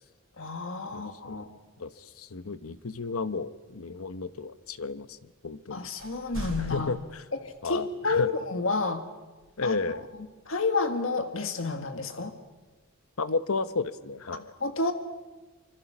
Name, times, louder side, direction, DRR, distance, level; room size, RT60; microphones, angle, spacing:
voice 1, 0.4-1.5 5.7-6.9 7.4-9.0 9.6-9.8 10.5-12.3 14.6-14.9, left 3 dB, 65° left, 7 dB, 1.6 m, -30 dB
voice 2, 0.9-1.5 1.8-5.2 5.4-5.9 6.6-7.2 7.6-8.3 9.6-10.0 13.2-14.5, left 4 dB, 80° left, 13 dB, 1.0 m, -33 dB
sound 1, 2.7-5.6 6.0-8.1 9.4-10.5 12.3-12.9 13.5-14.4, equal, 70° right, 5.3 m, -45 dB
25.5 x 25.0 x 6.1 m, 1.2 s
head